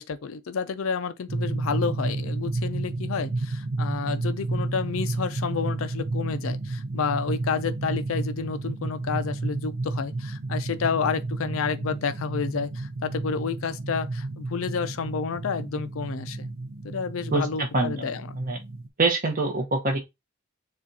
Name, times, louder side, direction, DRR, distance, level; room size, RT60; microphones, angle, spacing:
voice 1, 0.0-16.5 16.8-18.4, left 5 dB, 75° left, 0.5 m, -30 dB
sound 1, 1.3-18.9, right 2 dB, 75° right, 0.7 m, -31 dB
voice 2, 17.3-18.0 18.4-18.6 19.0-20.0, right 2 dB, 45° right, 1.1 m, -25 dB
7.1 x 2.4 x 2.8 m
head